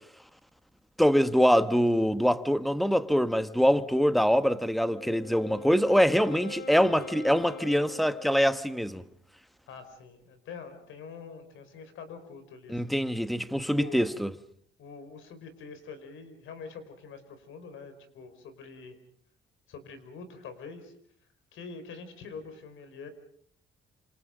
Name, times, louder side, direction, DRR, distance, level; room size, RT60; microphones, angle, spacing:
voice 1, 1.0-9.0 12.7-14.3, equal, ahead, 1.3 m, -24 dB
Wind instrument woodwind instrument, 4.6-8.9, left 3 dB, 55° left, 3.7 m, -44 dB
voice 2, 9.7-12.9 13.8-14.1 14.8-19.0 19.7-20.9 21.5-23.1, left 5 dB, 80° left, 5.0 m, -45 dB
28.0 x 28.0 x 5.2 m
cardioid pair, 90°, 20 cm